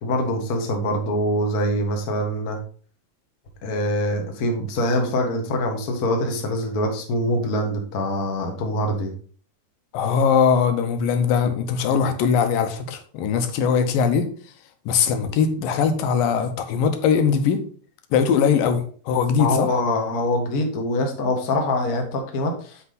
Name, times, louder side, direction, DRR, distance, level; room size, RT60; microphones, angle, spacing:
voice 1, 0.0-2.6 3.6-9.1 19.4-22.8, left 1 dB, 50° left, 1.1 m, -24 dB
voice 2, 9.9-14.3 14.9-17.6 18.1-19.7, left 6 dB, 85° left, 2.7 m, -21 dB
8.5 x 5.4 x 3.9 m
omnidirectional pair, 3.9 m